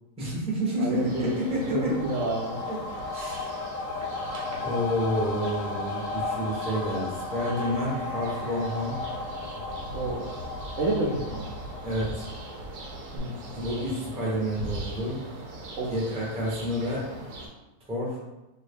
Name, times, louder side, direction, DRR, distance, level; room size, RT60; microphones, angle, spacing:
voice 1, 0.2-1.9 2.7-2.8 3.1-3.6 4.6-9.0 11.8-12.3 13.5-15.2 15.9-17.1 17.9-18.2, equal, 5° right, -6 dB, 0.6 m, -29 dB
voice 2, 0.8-1.3 1.7-2.6 9.9-10.3 10.8-11.5 13.1-13.4 15.8-15.9, right 2 dB, 70° right, -2 dB, 0.9 m, -29 dB
sound 1, 0.9-17.5, right 1 dB, 85° right, 1.3 m, -40 dB
sound 2, 1.4-12.8 13.2-13.3, left 3 dB, 65° left, 0.9 m, -35 dB
2.9 x 2.7 x 3.4 m, 1.0 s
omnidirectional pair, 1.6 m